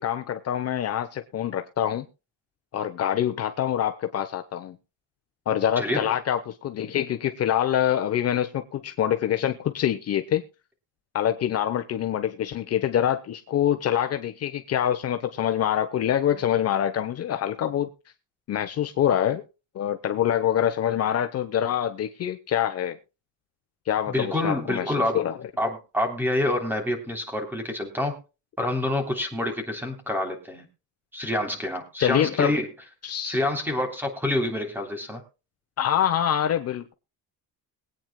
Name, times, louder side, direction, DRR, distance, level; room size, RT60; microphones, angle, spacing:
voice 1, 0.0-2.1 2.7-4.8 5.5-10.4 11.1-17.9 18.5-19.4 19.7-23.0 23.9-25.4 32.0-32.6 33.0-33.4 35.8-36.9, left 10 dB, 40° left, 7 dB, 0.9 m, -25 dB
voice 2, 5.8-6.1 24.1-25.2 25.6-28.2 28.6-30.7 31.1-32.7 33.2-35.2, left 1 dB, 5° right, 4 dB, 3.3 m, -27 dB
22.5 x 9.0 x 2.2 m, 0.30 s
cardioid pair, 160°, 36 cm